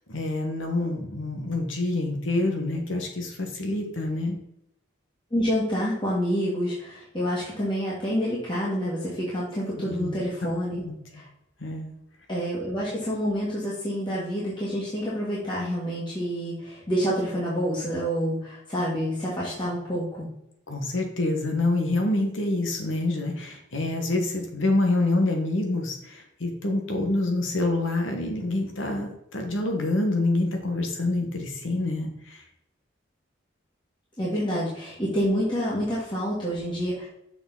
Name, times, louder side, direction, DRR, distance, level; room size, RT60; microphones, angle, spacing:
voice 1, 0.1-4.4 9.8-10.2 10.4-10.5 10.8-11.0 11.6-11.9 20.7-32.4, left 2 dB, 80° left, 3 dB, 1.5 m, -27 dB
voice 2, 5.3-10.8 11.1-11.2 12.3-20.3 34.2-37.1, equal, 25° left, -7 dB, 2.0 m, -28 dB
6.9 x 6.1 x 4.1 m, 0.79 s
head